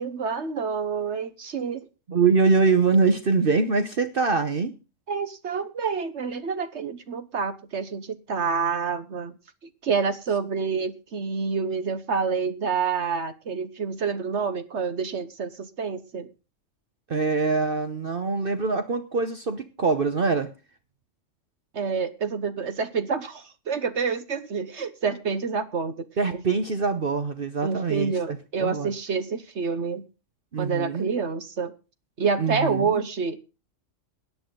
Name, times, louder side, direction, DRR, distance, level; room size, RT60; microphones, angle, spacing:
voice 1, 0.0-1.9 5.1-9.3 9.8-16.3 21.7-26.1 27.6-30.0 30.6-31.7 32.2-33.4, right 5 dB, 65° right, 12 dB, 1.3 m, -28 dB
voice 2, 2.1-4.7 17.1-20.5 26.2-28.9 30.5-31.1 32.4-33.0, right 4 dB, 50° right, 9 dB, 1.1 m, -24 dB
17.5 x 10.5 x 3.8 m, 0.32 s
omnidirectional pair, 1.3 m